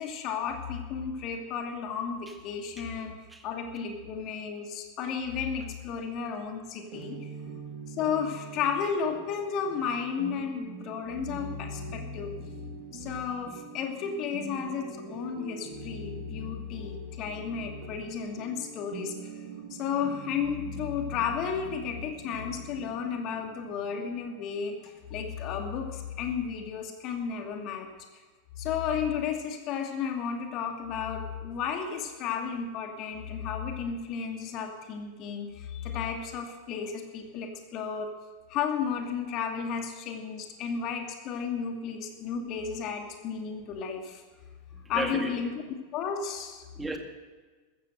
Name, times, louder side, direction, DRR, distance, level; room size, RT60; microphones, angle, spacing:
voice 1, 0.0-3.2 3.4-7.3 7.9-12.3 12.9-19.3 19.7-27.9 28.6-38.1 38.5-44.2 44.9-45.6 45.9-46.6, left 7 dB, 35° left, 3 dB, 2.5 m, -33 dB
sound 1, 6.9-26.5, right 5 dB, 35° right, 3.2 m, -44 dB
voice 2, 44.7-45.4 46.8-47.0, right 2 dB, 10° right, 4 dB, 2.2 m, -34 dB
14.5 x 14.0 x 6.6 m, 1.4 s
figure-of-eight pair, 90°, 0 cm